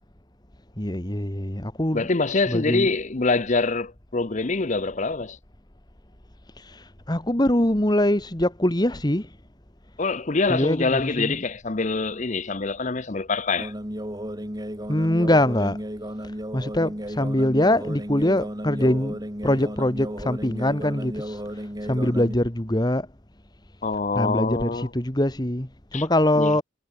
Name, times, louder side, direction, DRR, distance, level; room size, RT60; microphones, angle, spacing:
voice 1, 0.8-2.1 2.5-2.9 6.6-9.3 10.5-11.3 14.9-15.8 16.2-23.1 24.2-26.6, left 1 dB, 20° left, 1.6 m, -23 dB
voice 2, 1.9-5.4 10.0-13.7 23.8-24.9 25.9-26.0 26.4-26.6, left 3 dB, 35° left, 0.7 m, -25 dB
sound 1, 13.6-22.4, equal, 20° right, 4.7 m, -34 dB
head